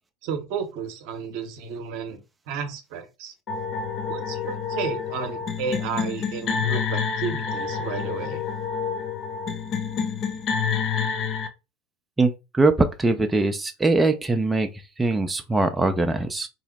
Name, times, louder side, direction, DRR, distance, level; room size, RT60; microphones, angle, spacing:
voice 1, 0.2-2.2 2.5-3.3 4.1-8.4, right 6 dB, 60° right, 0.8 m, -32 dB
sound 1, 3.5-11.5, left 6 dB, 45° left, 0.7 m, -28 dB
voice 2, 12.2-12.7 13.0-14.7 15.0-16.5, right 3 dB, 15° right, 0.4 m, -22 dB
2.9 x 2.0 x 4.0 m
hypercardioid pair, 85°, 0 cm